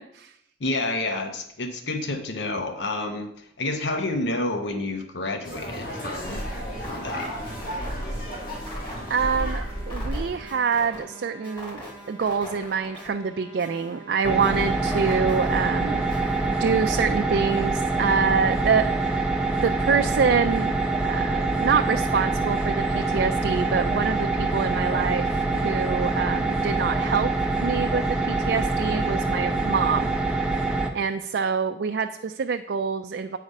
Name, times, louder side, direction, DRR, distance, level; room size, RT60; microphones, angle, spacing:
voice 1, 0.6-6.4 6.8-7.3, left 2 dB, 75° left, 7 dB, 0.9 m, -29 dB
sound 1, 5.4-10.4, equal, 50° left, 2.3 m, -33 dB
sound 2, 5.9-16.8, equal, 25° left, 2.5 m, -42 dB
voice 2, 9.1-16.1 16.5-19.3 19.6-20.7 21.0-33.4, right 6 dB, 65° right, 6 dB, 0.4 m, -26 dB
sound 3, 14.2-30.9, right 2 dB, 5° right, 0.7 m, -25 dB
8.4 x 4.9 x 5.3 m, 0.78 s
head